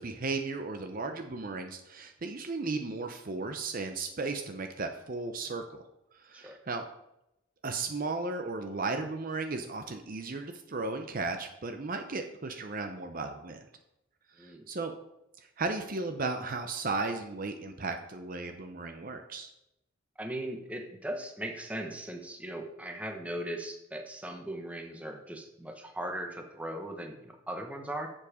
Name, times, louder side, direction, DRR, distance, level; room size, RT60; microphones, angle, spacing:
voice 1, 0.0-5.8 6.1-6.8 7.6-13.6 14.4-14.9 15.6-19.5, right 3 dB, 40° right, 6 dB, 0.6 m, -35 dB
voice 2, 14.4-14.7 20.2-28.1, right 1 dB, 5° right, 3 dB, 0.9 m, -38 dB
7.5 x 7.1 x 4.9 m, 0.86 s
head